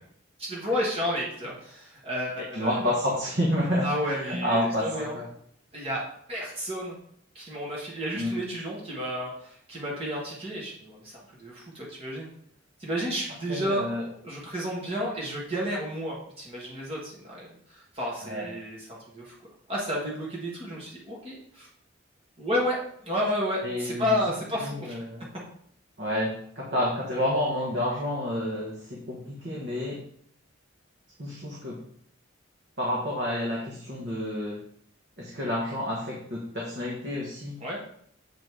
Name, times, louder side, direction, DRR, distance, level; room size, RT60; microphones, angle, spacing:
voice 1, 0.4-2.8 3.8-5.1 5.7-6.0 6.3-7.0 7.3-12.3 12.8-13.8 14.2-18.9 19.1-19.3 19.7-21.7 22.4-25.0 37.6-37.8, equal, 30° right, -4 dB, 1.6 m, -31 dB
voice 2, 2.5-5.3 8.1-8.3 13.5-14.0 18.2-18.5 23.6-24.1 24.6-25.2 26.0-30.0 31.2-31.7 32.8-34.6 35.2-37.6, left 1 dB, 55° right, -4 dB, 1.4 m, -29 dB
7.4 x 3.9 x 4.8 m, 0.66 s
head